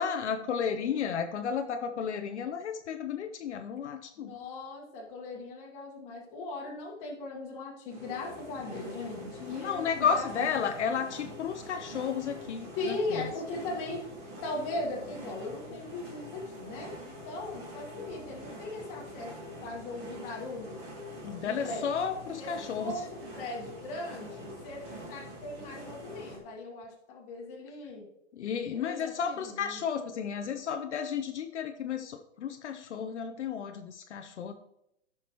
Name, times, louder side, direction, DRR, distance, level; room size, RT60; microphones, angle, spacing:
voice 1, 0.0-4.3 9.4-13.3 21.2-22.9 28.3-34.5, left 7 dB, 65° left, 7 dB, 0.7 m, -33 dB
voice 2, 4.2-10.4 12.7-14.1 14.4-19.3 19.6-20.8 21.4-21.9 22.4-24.8 25.1-28.1 28.7-29.8, left 2 dB, 15° left, -2 dB, 1.6 m, -39 dB
sound 1, 7.9-26.4, equal, 20° right, 1.7 m, -45 dB
14.5 x 6.1 x 3.0 m, 0.82 s
hypercardioid pair, 175°, 37 cm